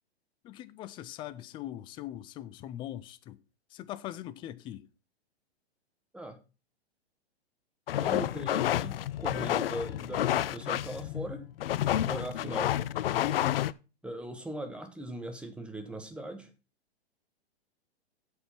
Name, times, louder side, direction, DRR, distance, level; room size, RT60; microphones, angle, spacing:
voice 1, 0.4-3.4 3.7-4.9, left 12 dB, 15° left, 0.4 m, -41 dB
sound 1, 7.9-13.7, left 12 dB, 60° left, 0.6 m, -30 dB
voice 2, 8.0-11.4 12.0-12.8 14.0-16.5, right 1 dB, 5° right, 1.4 m, -39 dB
8.5 x 6.4 x 5.7 m
hypercardioid pair, 120°, 33 cm